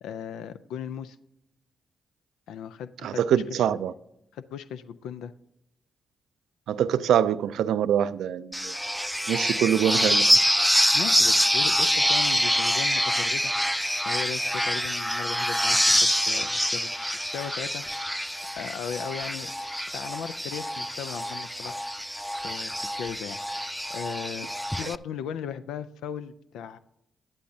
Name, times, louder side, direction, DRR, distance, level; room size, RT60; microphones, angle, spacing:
voice 1, 0.0-1.2 2.5-3.7 4.3-5.3 10.9-13.7 14.0-17.8 18.5-19.5 19.9-21.8 22.4-26.8, left 8 dB, 85° left, 0.4 m, -37 dB
voice 2, 3.0-3.9 6.7-8.8 9.3-10.4, right 9 dB, 80° right, 0.3 m, -24 dB
sound 1, 8.5-24.9, equal, ahead, 0.4 m, -25 dB
12.0 x 11.0 x 2.7 m
supercardioid pair, 45°, 0 cm